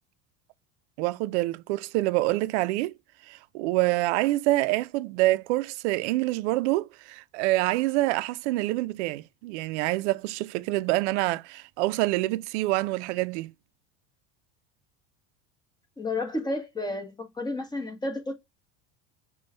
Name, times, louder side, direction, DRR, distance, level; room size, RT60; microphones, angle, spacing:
voice 1, 1.0-2.9 3.3-13.5, right 18 dB, 90° right, 0.5 m, -26 dB
voice 2, 16.0-18.3, left 2 dB, 10° left, 1.0 m, -31 dB
5.3 x 2.3 x 3.2 m
supercardioid pair, 125°, 33 cm